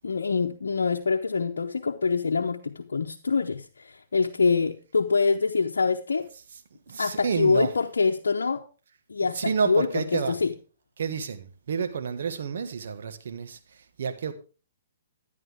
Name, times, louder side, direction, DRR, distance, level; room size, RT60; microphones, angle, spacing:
voice 1, 0.0-6.3 7.0-8.6 9.1-10.5, left 4 dB, 90° left, 0.8 m, -25 dB
voice 2, 6.9-7.7 9.2-10.4 11.0-14.3, right 6 dB, 70° right, 1.6 m, -30 dB
12.0 x 10.5 x 3.6 m
hypercardioid pair, 135°, 0 cm